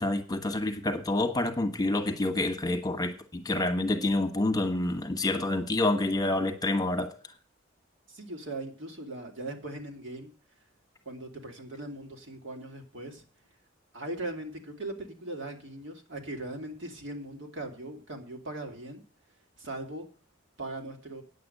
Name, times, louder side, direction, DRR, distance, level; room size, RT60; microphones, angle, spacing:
voice 1, 0.0-7.1, left 2 dB, 20° left, 1.2 m, -28 dB
voice 2, 8.1-10.3 11.1-13.3 13.9-19.0 19.6-20.1 20.6-21.2, right 2 dB, 70° right, 2.4 m, -39 dB
9.6 x 7.8 x 6.6 m
head